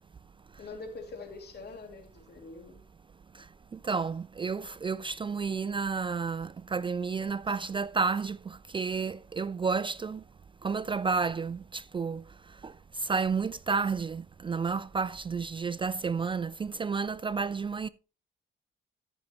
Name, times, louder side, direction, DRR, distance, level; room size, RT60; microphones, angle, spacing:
voice 1, 0.6-2.8, left 3 dB, 55° left, 2.6 m, -44 dB
voice 2, 3.7-10.2 10.6-12.2 12.6-12.7 13.0-17.9, right 5 dB, 25° right, 0.4 m, -31 dB
14.0 x 6.3 x 3.0 m
cardioid pair, 90°, 20 cm